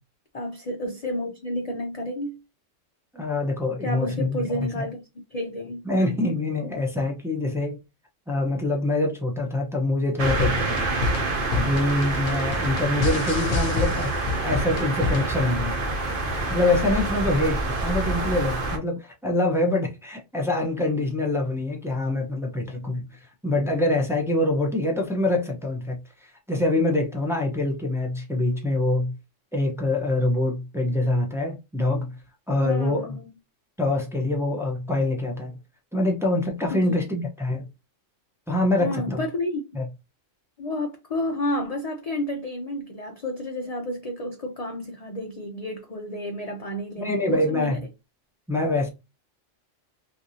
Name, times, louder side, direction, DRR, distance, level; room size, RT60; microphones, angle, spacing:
voice 1, 0.3-2.4 3.8-5.0 5.3-5.9 32.6-33.3 36.7-37.1 38.8-39.6 40.6-47.8, left 1 dB, 45° left, 0.5 m, -31 dB
voice 2, 3.1-4.9 5.8-7.8 8.3-10.9 11.5-15.8 16.5-29.1 29.5-32.2 32.5-33.2 33.8-35.5 35.9-37.7 38.5-39.2 39.7-39.8 47.0-47.8 48.5-48.9, left 2 dB, 5° right, 0.5 m, -25 dB
sound 1, 10.2-15.4, left 4 dB, 85° left, 1.0 m, -28 dB
sound 2, 10.2-18.8, right 2 dB, 50° right, 0.8 m, -27 dB
3.3 x 2.7 x 2.7 m
omnidirectional pair, 1.3 m